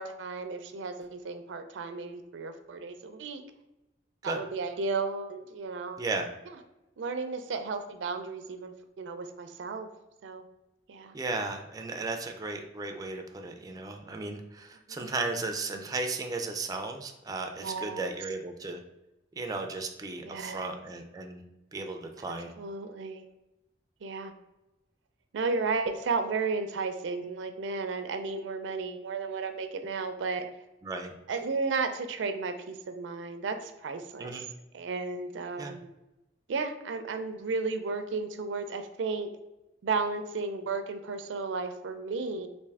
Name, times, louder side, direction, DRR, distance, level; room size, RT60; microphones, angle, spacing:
voice 1, 0.0-3.4 4.2-6.0 7.0-9.9 10.2-10.4 10.9-11.1 14.9-15.1 17.6-18.0 20.2-20.8 22.6-23.2 24.0-24.3 25.3-30.4 31.3-34.4 34.7-35.9 36.5-39.3 39.8-42.5, right 4 dB, 85° right, 8 dB, 0.4 m, -33 dB
voice 2, 6.0-6.3 11.1-18.8 19.4-21.4 21.7-22.5 30.8-31.1 34.2-34.5 35.6-35.7, right 3 dB, 20° right, 4 dB, 0.3 m, -35 dB
3.4 x 2.5 x 3.3 m, 0.97 s
head